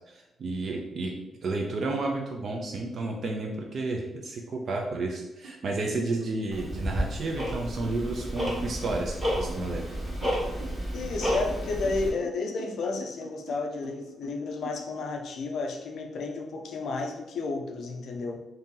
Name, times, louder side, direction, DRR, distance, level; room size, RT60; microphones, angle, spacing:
voice 1, 0.1-1.1 1.4-9.8, right 2 dB, 45° right, 1 dB, 0.4 m, -31 dB
sound 1, 5.4-5.6 5.8-15.0, right 3 dB, 85° right, 0.6 m, -46 dB
Tick-tock, 6.5-12.1, equal, 20° right, 1.0 m, -31 dB
voice 2, 10.9-18.4, left 3 dB, 55° left, 3 dB, 0.4 m, -32 dB
2.7 x 2.6 x 3.7 m, 0.96 s
cardioid pair, 170°, 0 cm